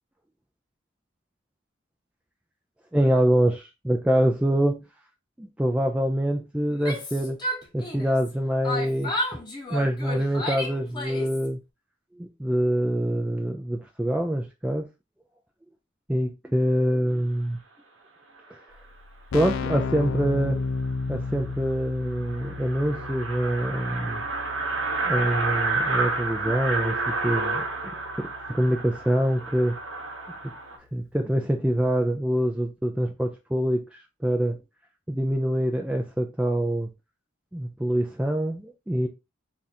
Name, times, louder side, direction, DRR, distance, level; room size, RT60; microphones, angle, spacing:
voice 1, 2.9-4.8 5.4-7.4 7.7-9.4 9.7-11.6 12.2-14.8 16.1-17.6 19.3-20.6 21.1-24.2 25.0-27.6 27.9-29.8 30.9-34.6 35.1-36.9 37.5-39.1, equal, 5° right, 0.3 m, -25 dB
Yell, 6.7-8.3 8.6-11.5, left 1 dB, 20° left, 1.0 m, -32 dB
Keyboard (musical), 18.7-18.8 19.0-29.6, left 4 dB, 85° left, 0.4 m, -35 dB
sound 1, 20.8-20.9 21.3-21.4 21.7-21.8 22.0-30.8, right 3 dB, 75° right, 0.9 m, -30 dB
3.4 x 2.5 x 4.1 m
head